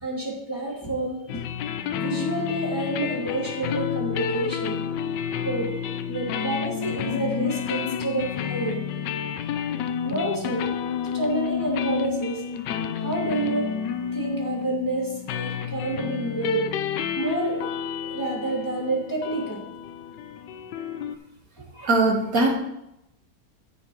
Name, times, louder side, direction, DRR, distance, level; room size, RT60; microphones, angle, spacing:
voice 1, 0.0-1.4 2.0-4.8 5.4-5.7 6.1-8.8 10.0-10.6 11.1-12.4 13.0-13.7 14.1-16.7 17.2-17.7 18.0-19.6 21.6-21.7, right 2 dB, 10° left, -3 dB, 1.9 m, -29 dB
sound 1, 1.3-21.2, left 7 dB, 80° left, 1.2 m, -30 dB
voice 2, 21.8-22.5, right 2 dB, 55° right, 1 dB, 1.5 m, -21 dB
16.5 x 5.8 x 3.0 m, 0.85 s
omnidirectional pair, 1.9 m